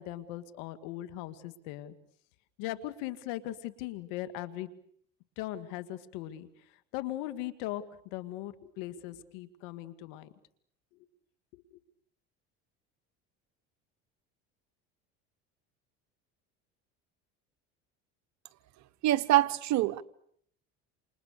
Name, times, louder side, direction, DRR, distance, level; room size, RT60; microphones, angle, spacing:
voice 1, 0.0-1.9 2.6-4.7 5.4-6.5 6.9-7.8 8.1-10.3 11.5-11.6, left 14 dB, 75° left, 2.3 m, -39 dB
voice 2, 19.0-20.0, right 15 dB, 60° right, 1.4 m, -25 dB
28.5 x 28.0 x 6.8 m
supercardioid pair, 90°, 33 cm